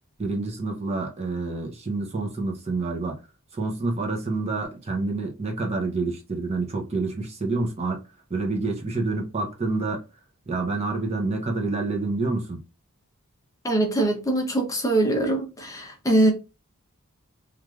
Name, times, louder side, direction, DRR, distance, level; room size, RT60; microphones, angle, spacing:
voice 1, 0.2-3.2 3.5-8.0 8.3-10.0 10.5-12.6, right 3 dB, 30° right, 0.6 m, -28 dB
voice 2, 13.6-16.3, right 1 dB, 15° left, 0.6 m, -22 dB
3.1 x 2.4 x 2.3 m
head